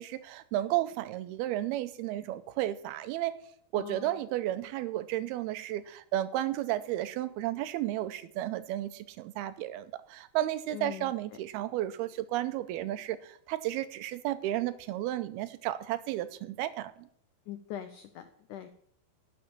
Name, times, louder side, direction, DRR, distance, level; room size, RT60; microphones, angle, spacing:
voice 1, 0.0-3.4 3.7-17.1, right 14 dB, 80° right, 13 dB, 2.5 m, -33 dB
voice 2, 3.7-4.2 10.7-11.1 17.5-18.7, left 11 dB, 80° left, 9 dB, 1.8 m, -42 dB
12.0 x 7.5 x 8.6 m, 0.68 s
omnidirectional pair, 4.6 m